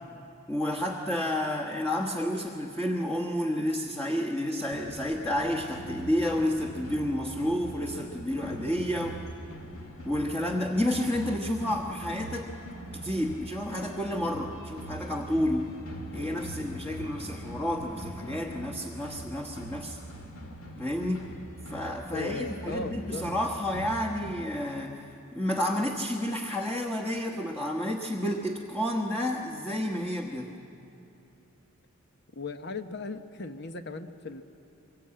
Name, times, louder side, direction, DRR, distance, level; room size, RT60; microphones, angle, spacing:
voice 1, 0.5-9.2 10.0-12.5 12.9-15.7 16.1-20.0 20.8-21.3 21.7-30.5, left 1 dB, 10° left, -2 dB, 1.3 m, -30 dB
sound 1, 4.7-24.3, right 1 dB, 75° left, 2.2 m, -42 dB
voice 2, 22.1-23.2 32.4-34.4, left 3 dB, 50° left, 8 dB, 1.0 m, -37 dB
24.0 x 22.5 x 8.8 m, 3.0 s
head